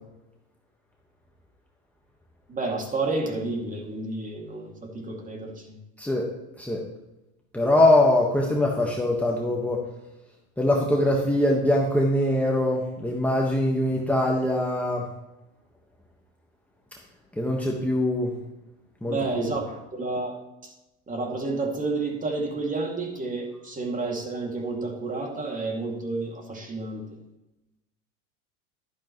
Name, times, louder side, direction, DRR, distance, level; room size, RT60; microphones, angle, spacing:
voice 1, 2.5-5.8 19.1-20.7 21.1-27.2, right 3 dB, 20° right, 2 dB, 2.4 m, -30 dB
voice 2, 6.0-6.3 6.6-6.8 7.5-9.8 10.6-15.1 17.3-18.3 19.0-19.5, left 1 dB, 5° left, -2 dB, 1.4 m, -23 dB
12.0 x 10.5 x 3.1 m, 0.97 s
supercardioid pair, 105°, 35 cm